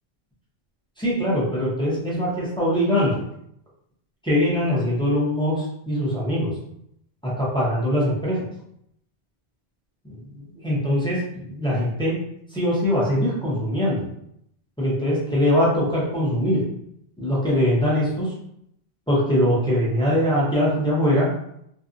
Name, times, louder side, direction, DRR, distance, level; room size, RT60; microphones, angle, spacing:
voice 1, 1.0-3.2 4.2-6.5 7.2-8.4 10.0-12.2 12.5-14.1 14.8-16.6 17.2-18.3 19.1-21.3, equal, 5° left, -8 dB, 0.7 m, -22 dB
2.7 x 2.3 x 2.5 m, 0.74 s
omnidirectional pair, 1.1 m